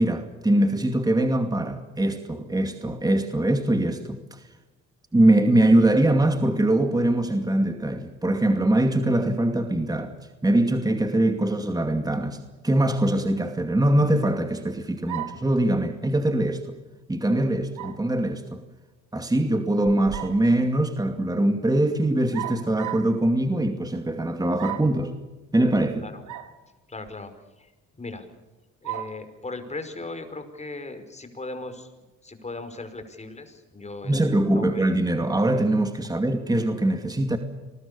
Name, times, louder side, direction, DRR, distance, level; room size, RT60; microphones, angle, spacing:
voice 1, 0.0-4.4 5.1-10.1 10.4-16.6 17.1-18.6 19.1-25.1 25.5-26.1 34.0-37.4, right 1 dB, 10° right, 2.5 m, -22 dB
sound 1, 15.1-15.5 17.8-18.1 19.8-20.5 22.3-23.1 24.6-25.0 26.3-26.5 27.1-27.2 28.8-29.2, right 13 dB, 75° right, 2.8 m, -34 dB
voice 2, 26.0-26.4 26.9-27.3 27.6-27.7 28.0-28.3 28.8-31.9 32.2-34.1 34.5-34.9, left 2 dB, 20° left, 5.2 m, -38 dB
28.0 x 20.5 x 7.0 m
cardioid pair, 90°, 30 cm